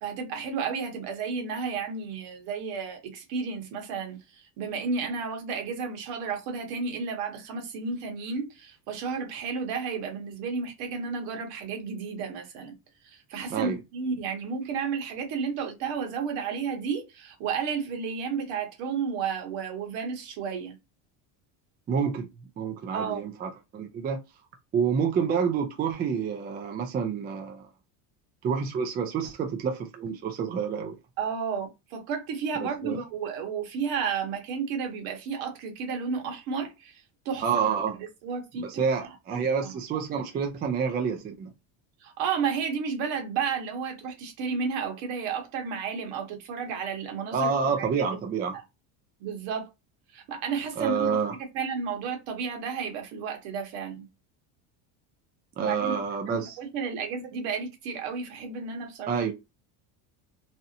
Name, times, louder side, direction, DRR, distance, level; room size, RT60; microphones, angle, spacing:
voice 1, 0.0-12.7 13.0-20.8 22.9-23.3 31.2-37.5 37.9-39.7 42.0-48.0 48.5-48.6 49.2-49.7 50.1-51.2 51.5-54.1 55.6-59.2, right 5 dB, 70° right, 1.1 m, -32 dB
voice 2, 21.9-22.3 22.6-24.2 24.7-27.7 28.4-30.9 32.6-33.0 37.4-38.0 38.5-41.5 47.3-48.6 50.8-51.4 55.6-56.6 59.1-59.3, right 6 dB, 25° right, 0.3 m, -28 dB
2.7 x 2.1 x 2.6 m
supercardioid pair, 120°, 46 cm